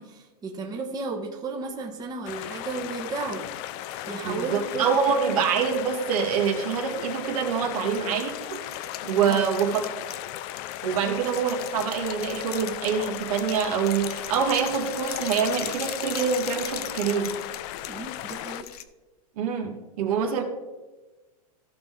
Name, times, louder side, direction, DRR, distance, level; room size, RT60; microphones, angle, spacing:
voice 1, 0.0-3.5 4.1-4.9 5.3-5.4 9.3-9.4 11.0-11.1 17.9-18.7, right 4 dB, 20° right, 0 dB, 1.3 m, -34 dB
sound 1, 2.3-18.6, left 13 dB, 45° left, 0.5 m, -36 dB
sound 2, 3.7-5.1 7.7-18.8, left 11 dB, 75° left, 0.8 m, -40 dB
voice 2, 4.2-8.6 9.0-9.8 10.8-17.4 19.4-20.4, right 6 dB, 70° right, 2 dB, 2.2 m, -25 dB
15.5 x 5.8 x 3.7 m, 1.2 s
supercardioid pair, 130°, 20 cm